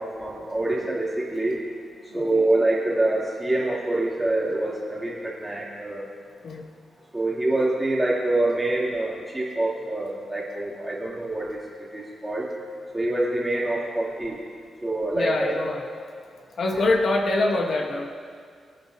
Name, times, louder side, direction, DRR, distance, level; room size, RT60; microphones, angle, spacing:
voice 1, 0.0-1.6 2.1-6.0 7.1-12.5 12.9-14.4 14.8-15.6, right 2 dB, 15° right, -5 dB, 2.7 m, -26 dB
voice 2, 2.1-2.5 6.4-6.7 15.1-16.1 16.6-18.1, left 2 dB, 60° left, 2 dB, 1.1 m, -25 dB
24.0 x 9.3 x 2.7 m, 2.1 s
cardioid pair, 110°, 0 cm